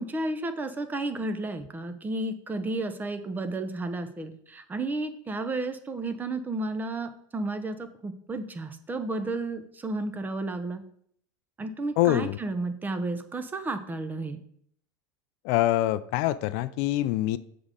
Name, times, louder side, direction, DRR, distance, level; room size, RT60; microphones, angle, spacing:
voice 1, 0.0-10.8 11.6-14.4, right 2 dB, 15° right, 9 dB, 0.8 m, -32 dB
voice 2, 12.0-12.4 15.4-17.4, left 15 dB, 60° left, 16 dB, 0.4 m, -25 dB
7.1 x 3.8 x 6.4 m, 0.65 s
supercardioid pair, 130°, 11 cm